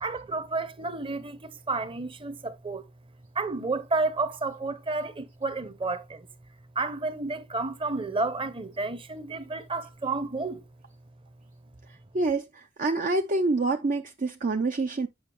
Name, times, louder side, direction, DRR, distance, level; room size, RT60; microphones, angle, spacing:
voice 1, 0.0-2.8 3.3-6.3 6.8-10.6, right 3 dB, 25° right, 0.9 m, -31 dB
voice 2, 12.1-15.1, right 3 dB, 40° right, 0.5 m, -27 dB
8.8 x 5.7 x 3.0 m
head